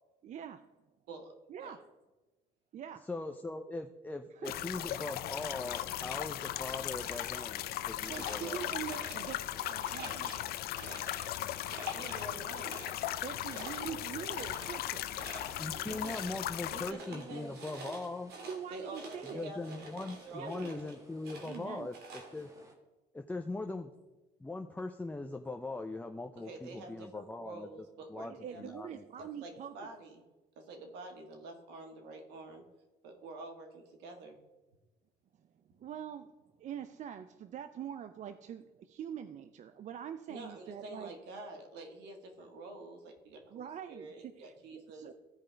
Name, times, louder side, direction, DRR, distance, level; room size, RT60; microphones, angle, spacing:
voice 1, 0.2-0.6 1.5-1.8 2.7-3.0 4.4-4.5 8.1-10.4 13.2-15.1 18.5-19.4 20.3-20.8 21.4-21.9 28.2-29.9 35.7-36.3 36.6-41.1 43.5-45.1, right 9 dB, 45° right, 11 dB, 0.4 m, -44 dB
voice 2, 3.1-8.6 15.6-18.3 19.2-22.5 23.1-23.9 24.4-29.3, left 2 dB, 10° left, 5 dB, 0.5 m, -41 dB
sound 1, 4.4-16.9, left 13 dB, 65° left, 0.5 m, -38 dB
sound 2, 6.9-7.4 8.0-9.5 9.8-11.4 11.7-12.3 12.6-16.5 16.8-21.0 21.2-22.6, right 3 dB, 70° right, 2.1 m, -49 dB
voice 3, 11.9-12.8 15.7-16.2 16.6-17.5 18.7-19.9 20.2-21.0 26.4-28.7 29.2-30.3 30.5-32.6 33.0-34.4 40.3-45.1, right 2 dB, 90° right, 4 dB, 1.6 m, -48 dB
sound 3, 12.9-22.7, right 1 dB, 20° right, 1.7 m, -60 dB
15.0 x 5.1 x 3.3 m, 1.1 s
cardioid pair, 110°, 17 cm